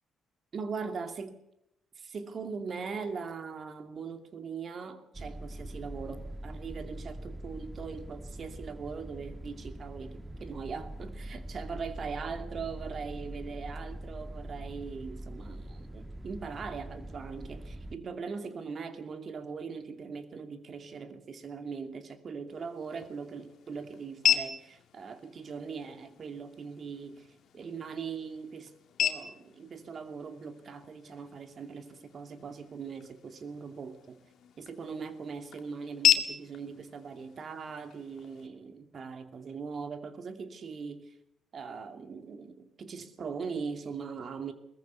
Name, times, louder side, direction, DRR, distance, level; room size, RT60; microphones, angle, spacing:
voice 1, 0.5-1.4 2.0-27.3 27.5-28.7 29.0-34.2 34.6-41.2 41.5-44.5, right 5 dB, 50° right, 8 dB, 2.6 m, -40 dB
sound 1, 5.1-18.0, right 1 dB, 15° right, 1.6 m, -43 dB
sound 2, 22.5-38.5, left 9 dB, 60° left, 2.0 m, -35 dB
21.5 x 20.5 x 7.0 m, 0.81 s
hypercardioid pair, 45°, 0 cm